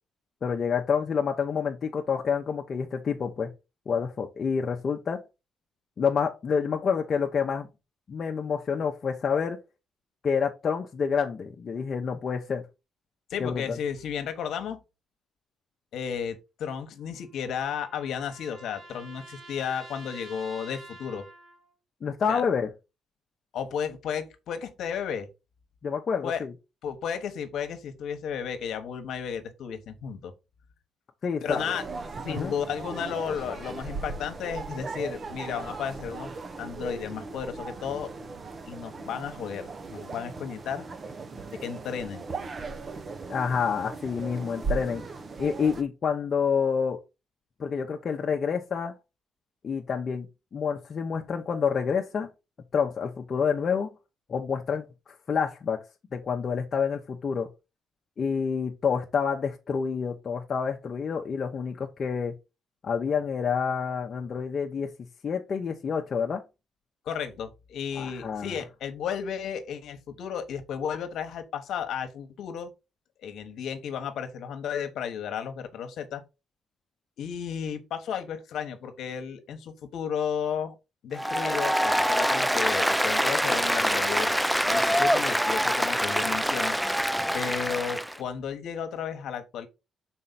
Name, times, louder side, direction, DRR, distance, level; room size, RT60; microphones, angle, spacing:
voice 1, 0.4-3.5 3.9-5.2 6.0-7.7 8.1-9.6 10.2-12.6 13.4-13.8 22.0-22.7 25.8-26.5 31.2-31.6 32.3-32.5 43.3-45.0 45.4-47.0 47.6-48.9 49.6-50.3 50.5-52.3 52.7-53.9 54.3-54.9 55.3-55.8 56.1-57.5 58.2-62.4 62.8-64.9 65.2-66.4 68.0-68.6, left 6 dB, 50° left, 0.8 m, -28 dB
voice 2, 13.3-14.8 15.9-21.3 22.3-22.4 23.5-25.3 26.2-26.4 26.8-30.3 31.4-31.8 32.2-36.3 36.6-38.1 38.7-40.9 41.5-42.2 67.0-72.7 73.2-76.2 77.2-80.8 81.0-84.3 84.7-86.8 87.3-89.7, left 7 dB, 75° left, 1.1 m, -33 dB
sound 1, 17.0-21.7, right 1 dB, 80° right, 2.4 m, -48 dB
sound 2, 31.5-45.8, right 4 dB, 40° right, 0.8 m, -38 dB
Applause, 81.1-88.2, equal, ahead, 0.3 m, -25 dB
5.5 x 4.3 x 4.0 m
cardioid pair, 90°, 0 cm